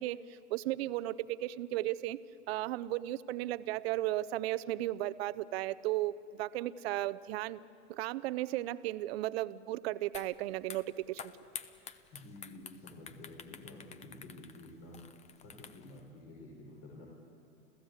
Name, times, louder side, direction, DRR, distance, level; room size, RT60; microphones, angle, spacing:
voice 1, 0.0-2.2 2.5-7.6 7.9-11.3, right 15 dB, 45° right, 16 dB, 0.7 m, -35 dB
sound 1, 10.1-10.3 10.6-16.0, left 7 dB, 15° left, 0.8 m, -48 dB
voice 2, 12.1-15.0 15.4-17.1, left 2 dB, 40° left, -3 dB, 5.2 m, -51 dB
30.0 x 15.0 x 8.1 m, 2.7 s
hypercardioid pair, 125°, 43 cm